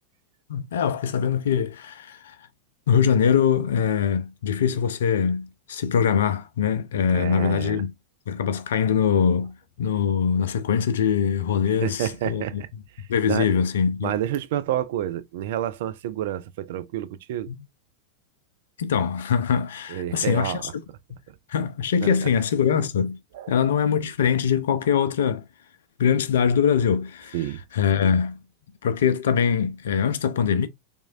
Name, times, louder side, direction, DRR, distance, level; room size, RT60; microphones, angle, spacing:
voice 1, 0.5-2.4 2.9-7.9 8.3-12.6 13.1-14.1 17.5-17.6 18.8-20.6 21.5-23.2 23.5-25.4 26.0-27.4 27.7-28.4 28.8-30.7, left 7 dB, 60° left, 0.5 m, -23 dB
voice 2, 7.1-7.8 11.8-12.7 13.0-13.5 14.0-17.5 19.9-20.7 21.3-21.4 22.0-22.1 23.3-23.5 27.3-27.6, right 11 dB, 55° right, 0.3 m, -29 dB
3.5 x 3.1 x 2.3 m
figure-of-eight pair, 90°, 0 cm